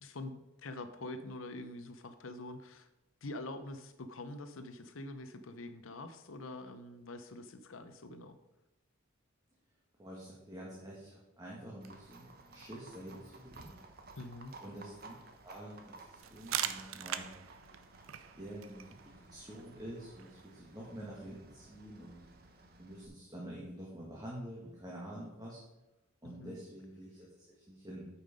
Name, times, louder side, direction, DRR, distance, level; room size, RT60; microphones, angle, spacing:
voice 1, 0.0-2.9 3.2-8.4 14.2-14.5 26.2-26.6, left 2 dB, 80° left, 10 dB, 0.8 m, -45 dB
voice 2, 10.0-13.7 14.6-15.1 15.4-17.3 18.4-22.2 22.8-25.6 26.2-28.1, right 1 dB, 20° right, -5 dB, 1.6 m, -47 dB
Livestock farm animals working animals, 11.8-23.1, right 3 dB, 50° right, 1.0 m, -56 dB
sound 1, 16.2-21.7, right 10 dB, 85° right, 0.6 m, -43 dB
9.1 x 5.8 x 5.1 m, 0.98 s
head